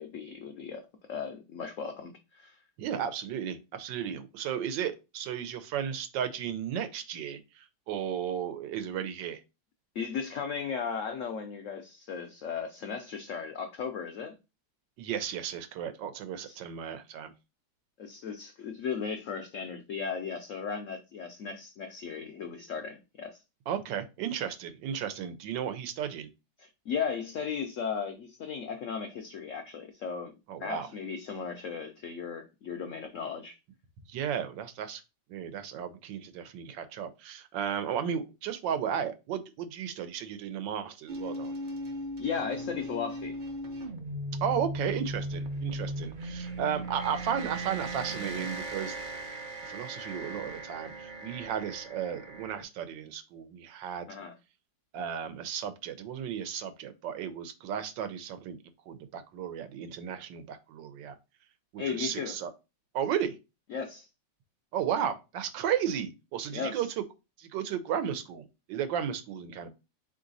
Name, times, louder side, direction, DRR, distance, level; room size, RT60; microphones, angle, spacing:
voice 1, 0.0-2.6 9.9-14.4 16.4-16.6 18.0-23.4 26.6-30.3 30.6-33.6 42.2-43.4 54.1-54.3 61.8-62.4 63.7-64.1 66.5-66.9, left 6 dB, 85° left, 0.7 m, -36 dB
voice 2, 2.8-9.4 15.0-17.3 23.7-26.3 30.5-30.9 34.1-35.0 35.3-41.5 44.4-48.9 49.6-54.1 54.9-58.6 58.9-61.2 61.7-62.5 62.9-63.4 64.7-67.0 67.4-69.7, right 8 dB, 90° right, 1.4 m, -34 dB
sound 1, 41.1-52.6, right 1 dB, 55° right, 0.5 m, -37 dB
3.8 x 3.2 x 3.9 m
omnidirectional pair, 1.9 m